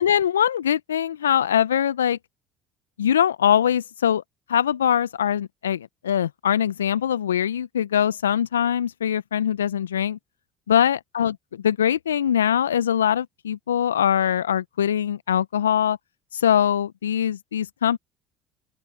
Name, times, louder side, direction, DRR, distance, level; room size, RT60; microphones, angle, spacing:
voice 1, 0.0-2.2 3.0-4.2 4.5-10.2 10.7-11.4 11.6-16.0 16.3-18.0, left 9 dB, 80° left, 0.6 m, -22 dB
open air
figure-of-eight pair, 60°, 0 cm